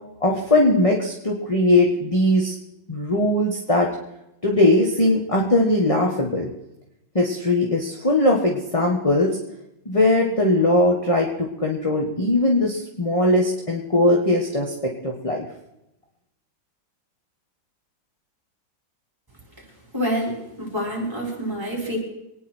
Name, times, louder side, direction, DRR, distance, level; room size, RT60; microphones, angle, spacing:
voice 1, 0.2-2.5 2.9-3.9 4.4-6.5 7.1-9.3 9.8-14.7 15.0-15.4, left 1 dB, 20° left, -1 dB, 1.5 m, -20 dB
voice 2, 19.9-22.0, equal, 10° right, -4 dB, 5.3 m, -27 dB
25.0 x 10.0 x 4.5 m, 0.88 s
omnidirectional pair, 2.2 m